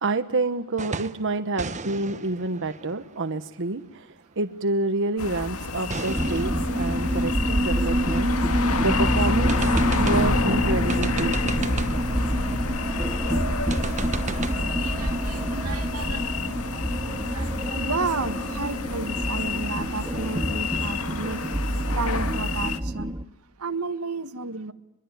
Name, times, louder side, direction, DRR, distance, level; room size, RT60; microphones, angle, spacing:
voice 1, 0.0-9.7 10.0-11.4, right 2 dB, 60° right, 8 dB, 1.2 m, -28 dB
sound 1, 0.8-1.3 1.6-4.2 5.9-8.6 9.0-9.1 9.5-10.4 10.9-12.1 13.7-14.5, right 4 dB, 35° right, 1.2 m, -36 dB
sound 2, 5.2-22.8, left 3 dB, 85° left, 1.8 m, -29 dB
sound 3, 6.1-23.2, right 1 dB, 15° right, 0.9 m, -27 dB
voice 2, 14.3-16.4 16.7-16.8 17.3-21.6 21.9-23.2 23.6-24.7, right 3 dB, 90° right, 9 dB, 1.7 m, -32 dB
23.5 x 23.5 x 9.2 m, 0.90 s
head